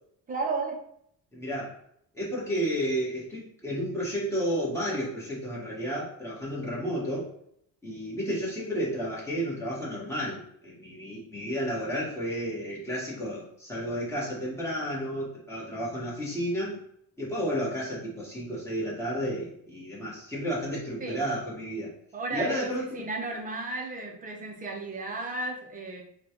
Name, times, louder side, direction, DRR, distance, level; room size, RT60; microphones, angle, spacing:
voice 1, 0.3-0.8 21.0-21.2 22.1-26.0, right 3 dB, 20° right, 1 dB, 0.6 m, -34 dB
voice 2, 1.3-1.7 2.1-7.3 7.8-16.8 17.2-21.9 22.3-23.1, equal, 5° left, -7 dB, 1.4 m, -32 dB
4.2 x 2.3 x 3.0 m, 0.69 s
cardioid pair, 145°, 37 cm